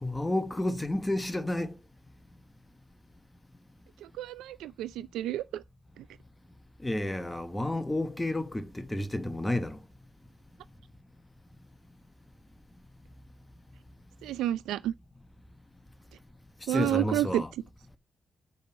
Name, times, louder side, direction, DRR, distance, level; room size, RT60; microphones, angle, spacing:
voice 1, 0.0-1.7 6.8-9.8 16.7-17.5, left 1 dB, 15° left, 1.2 m, -31 dB
voice 2, 4.2-5.6 14.2-14.9 16.7-17.4, right 13 dB, 85° right, 0.4 m, -30 dB
7.0 x 5.1 x 5.8 m
supercardioid pair, 45°, 0 cm